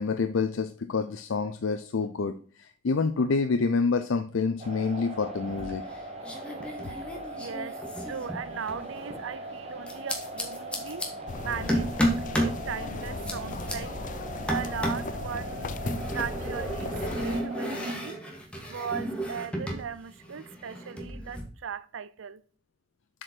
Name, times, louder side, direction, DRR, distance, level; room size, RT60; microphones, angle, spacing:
voice 1, 0.0-5.8, left 4 dB, 90° left, 0.5 m, -27 dB
sound 1, 4.6-17.9, right 1 dB, 30° right, 1.8 m, -40 dB
sound 2, 5.4-6.0 6.2-8.9 9.9-11.1 11.7-12.6 13.0-13.7 14.5-15.1 15.9-19.9 20.1-21.4, equal, 5° left, 1.4 m, -32 dB
voice 2, 7.4-11.1 11.4-15.8 16.1-18.2 18.7-22.4, right 7 dB, 80° right, 0.5 m, -38 dB
sound 3, 11.3-17.4, left 3 dB, 40° left, 0.5 m, -37 dB
7.5 x 5.0 x 4.4 m
head